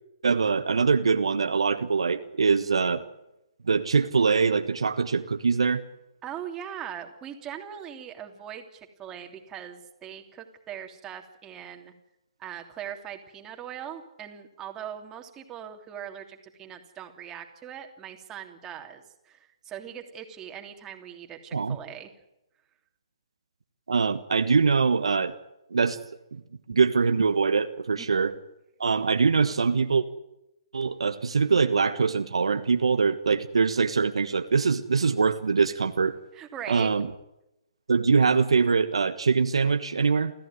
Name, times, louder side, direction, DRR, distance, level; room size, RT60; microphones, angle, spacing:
voice 1, 0.2-3.0 3.7-5.8 21.5-21.8 23.9-25.3 25.7-26.0 26.3-26.4 26.7-28.3 28.8-30.1 30.7-36.2 36.7-37.1 37.9-40.3, right 5 dB, 75° right, 8 dB, 1.4 m, -23 dB
voice 2, 6.2-11.9 12.4-22.1 28.0-28.2 36.3-36.9, right 9 dB, 20° right, 3 dB, 3.0 m, -40 dB
29.5 x 14.5 x 9.6 m, 0.90 s
figure-of-eight pair, 135°, 3 cm